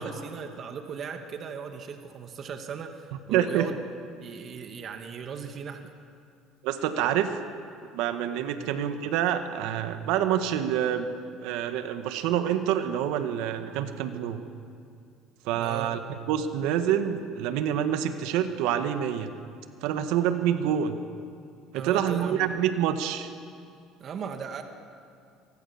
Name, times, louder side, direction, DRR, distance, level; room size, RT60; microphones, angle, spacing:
voice 1, 0.0-3.8 4.2-5.9 8.6-8.7 15.6-15.9 21.7-22.4 24.0-24.6, right 6 dB, 45° right, 5 dB, 2.0 m, -37 dB
voice 2, 3.3-3.7 6.6-7.4 7.9-11.1 11.4-14.4 15.4-16.0 16.3-19.3 19.8-21.0 21.7-23.3, right 10 dB, 75° right, 8 dB, 1.7 m, -27 dB
26.0 x 23.5 x 7.3 m, 2.4 s
supercardioid pair, 110°, 0 cm